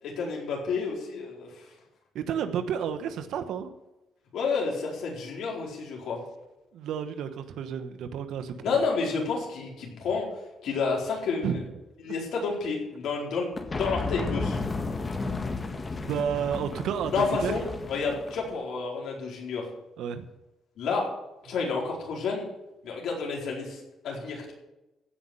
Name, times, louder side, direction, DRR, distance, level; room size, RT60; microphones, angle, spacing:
voice 1, 0.0-1.5 4.3-6.2 8.6-10.3 10.6-11.6 12.0-14.6 17.1-19.7 20.8-21.1 21.4-22.5 22.8-24.5, left 4 dB, 75° left, -2 dB, 4.6 m, -30 dB
voice 2, 2.1-3.7 6.7-8.8 11.4-11.6 16.0-17.6 20.0-20.3, right 8 dB, 80° right, 9 dB, 1.1 m, -31 dB
sound 1, 13.5-18.6, left 3 dB, 30° left, 1.7 m, -33 dB
16.0 x 5.6 x 8.0 m, 0.98 s
cardioid pair, 90°, 0 cm